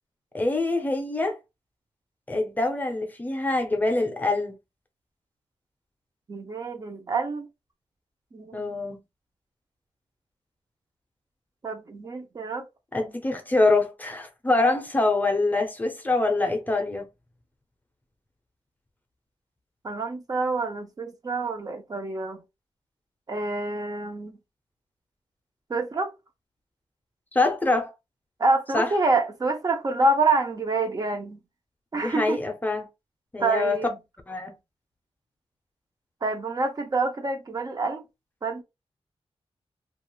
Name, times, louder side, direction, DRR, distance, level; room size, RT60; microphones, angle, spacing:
voice 1, 0.3-1.4 2.3-4.5 8.5-9.0 12.9-17.1 27.3-27.9 28.7-28.9 31.9-32.9 33.3-33.8 34.3-34.5, left 2 dB, 15° left, 0.5 m, -25 dB
voice 2, 6.3-7.5 8.3-8.8 11.6-12.7 19.8-22.4 23.3-24.4 25.7-26.1 28.4-31.4 31.9-32.4 33.4-34.0 36.2-38.0 38.4-38.6, right 3 dB, 35° right, 0.5 m, -27 dB
2.4 x 2.3 x 2.9 m
wide cardioid pair, 125°, 11 cm